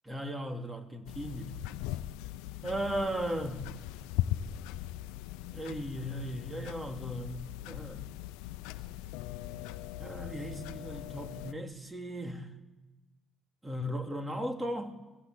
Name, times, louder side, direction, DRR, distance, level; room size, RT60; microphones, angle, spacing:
voice 1, 0.0-1.6 2.6-3.7 5.5-8.0 10.0-12.5 13.6-15.0, equal, 15° right, 3.3 m, -37 dB
sound 1, 1.1-11.5, left 13 dB, 85° left, 0.8 m, -39 dB
24.5 x 20.0 x 8.3 m
supercardioid pair, 70°, 0 cm